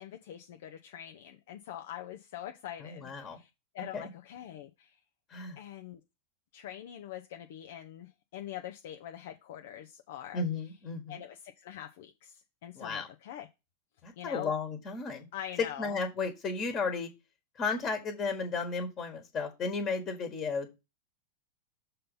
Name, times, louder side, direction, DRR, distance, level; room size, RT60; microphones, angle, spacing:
voice 1, 0.0-3.5 3.7-5.0 5.6-6.0 6.5-10.4 11.1-13.5 14.2-14.5 15.3-16.0, left 11 dB, 55° left, 6 dB, 0.6 m, -44 dB
voice 2, 2.8-3.4 3.9-4.1 5.3-5.6 10.3-11.2 12.8-13.1 14.0-15.3 15.8-17.1 17.6-20.7, left 4 dB, 25° left, 6 dB, 1.6 m, -34 dB
6.7 x 3.9 x 5.4 m, 0.25 s
figure-of-eight pair, 90°, 0 cm